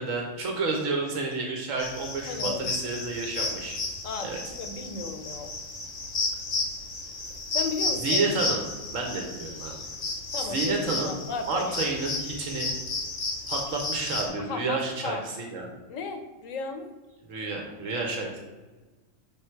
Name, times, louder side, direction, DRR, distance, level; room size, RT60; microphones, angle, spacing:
voice 1, 0.0-3.8 4.2-4.4 8.0-8.6 8.9-9.8 10.5-11.1 11.5-12.7 13.5-15.7 17.3-18.4, right 3 dB, 85° right, 1 dB, 1.3 m, -30 dB
sound 1, 1.8-14.3, left 3 dB, 70° left, 1.7 m, -32 dB
voice 2, 2.3-2.7 4.0-5.5 7.5-8.3 10.3-11.9 14.5-15.2 15.9-16.9, left 4 dB, 90° left, 6 dB, 1.2 m, -35 dB
6.2 x 3.6 x 4.5 m, 1.2 s
omnidirectional pair, 1.3 m